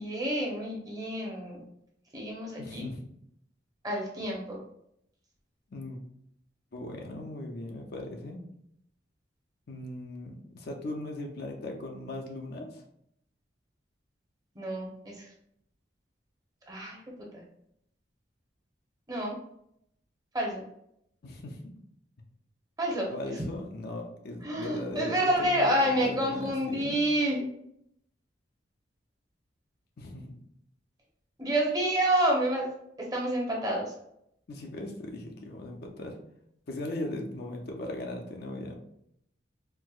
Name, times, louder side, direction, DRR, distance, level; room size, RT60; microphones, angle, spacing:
voice 1, 0.0-1.6 2.1-2.8 3.8-4.6 14.5-15.3 16.7-17.0 17.3-17.4 19.1-19.4 20.3-20.6 22.8-23.1 24.4-27.5 31.4-32.7 33.0-33.9, right 1 dB, 20° right, -2 dB, 0.8 m, -28 dB
voice 2, 2.6-3.0 5.7-6.0 6.7-8.4 9.7-12.8 21.2-21.8 23.1-27.0 30.0-30.3 34.5-36.2 36.7-38.7, left 1 dB, 55° left, 2 dB, 0.5 m, -38 dB
4.4 x 2.0 x 2.3 m, 0.73 s
head